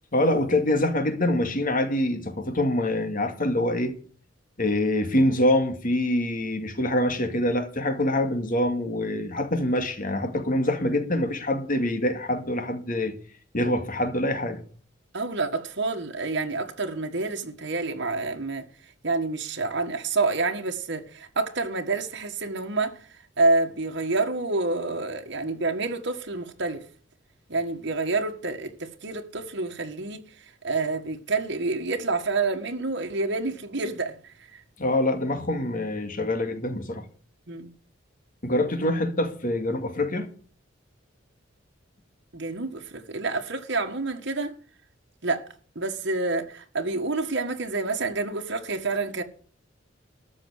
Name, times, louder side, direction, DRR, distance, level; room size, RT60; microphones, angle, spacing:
voice 1, 0.1-3.9 4.6-13.1 13.5-14.6 34.8-37.1 38.4-40.3, left 1 dB, 45° left, 2.3 m, -25 dB
voice 2, 15.1-18.7 19.0-23.0 23.4-26.8 27.5-34.2 34.5-34.6 37.5-37.7 42.3-44.5 45.2-49.2, right 3 dB, 65° right, 1.7 m, -28 dB
14.0 x 6.1 x 9.6 m
head